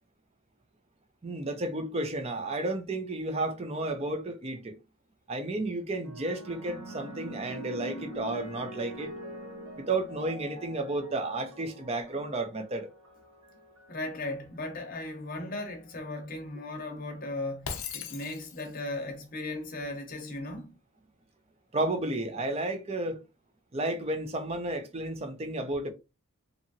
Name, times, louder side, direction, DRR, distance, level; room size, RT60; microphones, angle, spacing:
voice 1, 1.2-4.8 5.3-9.1 9.8-12.9 21.7-23.2 23.7-25.9, right 2 dB, 30° right, 0.4 m, -32 dB
sound 1, 6.0-14.6 15.5-15.9, right 1 dB, 65° right, 0.7 m, -44 dB
voice 2, 13.9-20.7, left 2 dB, 40° left, 0.8 m, -37 dB
Shatter, 17.6-18.9, left 6 dB, 70° left, 0.5 m, -38 dB
2.8 x 2.5 x 2.6 m
head